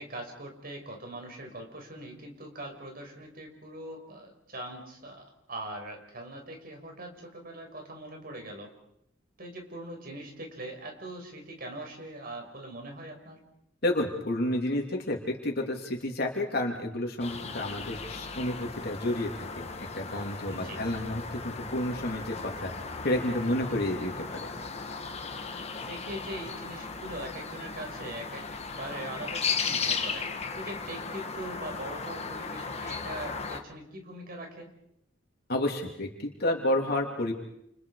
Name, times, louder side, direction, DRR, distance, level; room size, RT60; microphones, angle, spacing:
voice 1, 0.0-8.7 9.4-13.4 20.4-20.8 25.7-28.5 28.7-30.3 30.5-34.7, right 1 dB, 50° right, 2 dB, 5.7 m, -41 dB
voice 2, 13.8-22.7 23.0-24.5 35.5-37.3, left 1 dB, 55° left, 1 dB, 3.1 m, -30 dB
sound 1, 17.2-33.6, left 5 dB, 35° left, 1.9 m, -36 dB
29.5 x 28.5 x 4.9 m, 0.76 s
head